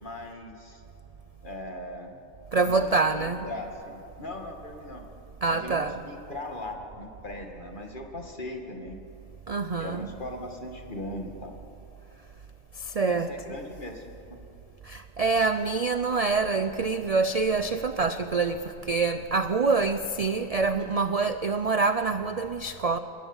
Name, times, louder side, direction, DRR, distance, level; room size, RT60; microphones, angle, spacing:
voice 1, 0.0-0.8 1.4-2.1 2.6-5.0 5.5-5.8 6.1-9.0 9.8-11.5 13.1-14.2, left 1 dB, 35° left, 2 dB, 2.3 m, -39 dB
voice 2, 2.5-3.5 5.4-6.0 9.5-10.1 13.0-13.3 14.9-18.6 18.9-23.0, right 4 dB, 45° right, 10 dB, 0.5 m, -26 dB
28.0 x 18.5 x 7.2 m, 2.9 s
omnidirectional pair, 1.4 m